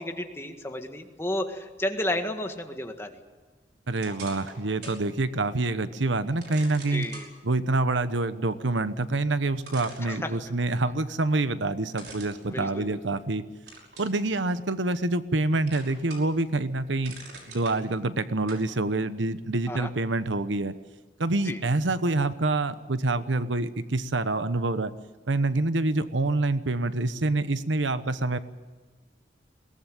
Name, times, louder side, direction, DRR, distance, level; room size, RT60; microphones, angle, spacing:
voice 1, 0.0-3.1 6.9-7.3 10.0-10.3 12.5-13.0 19.7-19.9 21.4-21.6, left 1 dB, 15° left, 5 dB, 1.8 m, -32 dB
voice 2, 3.9-7.1 7.4-13.4 14.0-17.2 17.5-20.7 21.2-24.9 25.3-28.4, right 2 dB, 85° right, 12 dB, 1.1 m, -26 dB
sound 1, 4.0-5.0 5.5-5.6 6.4-7.3 9.1-9.2 9.6-10.7 11.9-13.2 13.7-14.2 14.7-15.4 15.7-16.4 16.7-17.8 18.5-18.7, right 3 dB, 60° right, 5.6 m, -44 dB
22.0 x 18.0 x 9.3 m, 1.4 s
head